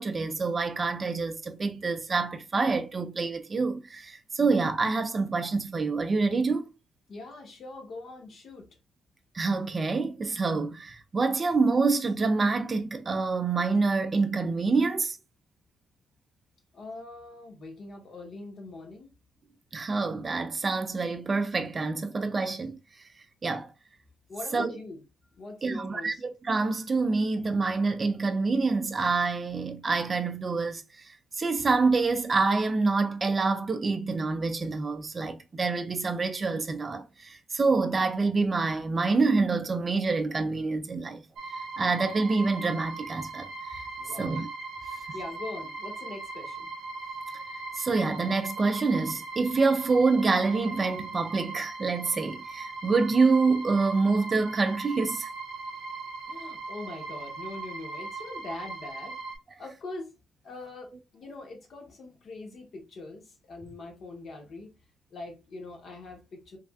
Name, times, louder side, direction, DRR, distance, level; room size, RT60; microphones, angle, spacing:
voice 1, 0.0-6.6 9.3-15.2 19.7-22.7 23.4-23.7 24.5-24.8 25.6-31.0 31.4-41.2 41.8-43.8 44.2-44.5 47.8-55.3, right 4 dB, 30° right, 0.3 m, -26 dB
voice 2, 7.1-8.7 16.7-19.1 24.3-25.0 25.4-26.2 44.0-44.4 45.1-46.7 56.3-59.2 59.6-60.1 60.4-64.7 65.1-66.6, left 2 dB, 50° left, 0.9 m, -42 dB
sound 1, 41.4-59.4, right 3 dB, 75° right, 0.6 m, -39 dB
3.2 x 2.5 x 2.3 m
cardioid pair, 115°, 0 cm